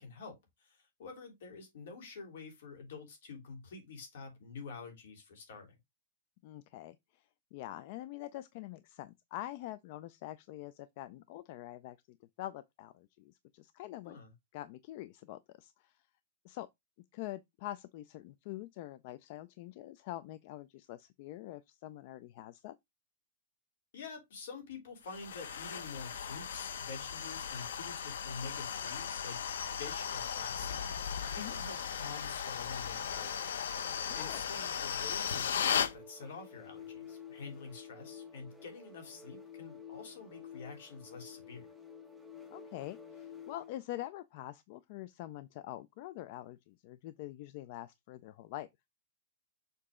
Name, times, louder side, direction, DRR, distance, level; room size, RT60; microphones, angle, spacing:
voice 1, 0.0-5.8 14.0-14.3 23.9-41.7, left 4 dB, 65° left, 3.4 m, -48 dB
voice 2, 6.4-14.2 14.5-16.0 16.4-16.7 17.1-22.8 31.4-31.5 34.1-34.4 42.5-48.7, left 15 dB, 40° left, 0.4 m, -45 dB
sound 1, 25.1-35.9, left 7 dB, 90° left, 0.8 m, -37 dB
sound 2, 35.4-43.8, left 7 dB, ahead, 0.7 m, -51 dB
6.7 x 4.0 x 3.7 m
supercardioid pair, 170°, 0 cm